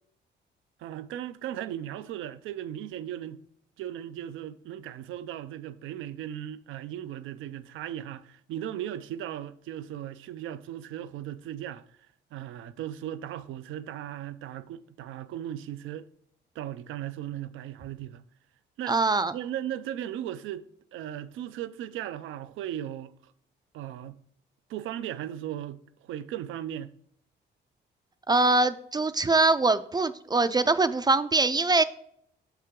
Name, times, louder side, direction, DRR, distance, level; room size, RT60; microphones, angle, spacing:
voice 1, 0.8-3.4 3.8-11.8 12.3-16.1 16.6-18.2 18.8-19.0 19.3-20.7 20.9-23.1 23.7-24.2 24.7-27.0, right 11 dB, 85° right, 0.5 m, -37 dB
voice 2, 18.9-19.3 28.3-31.8, right 3 dB, 20° right, 0.4 m, -23 dB
6.7 x 5.6 x 3.6 m
cardioid pair, 90°, 20 cm